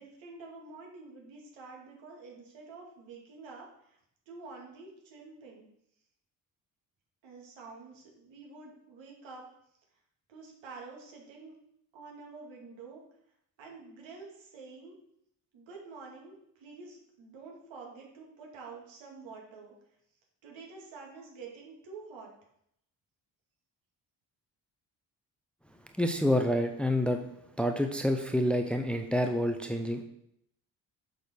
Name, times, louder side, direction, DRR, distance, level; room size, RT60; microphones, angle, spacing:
voice 1, 0.0-4.0 4.3-5.7 7.2-9.5 10.3-11.5 11.9-13.0 13.6-14.9 15.5-19.7 20.4-22.3, right 4 dB, 65° right, -1 dB, 2.5 m, -48 dB
voice 2, 26.0-27.2 27.6-30.0, left 1 dB, ahead, 5 dB, 1.0 m, -28 dB
7.3 x 6.4 x 4.6 m, 0.75 s
figure-of-eight pair, 40°, 50 cm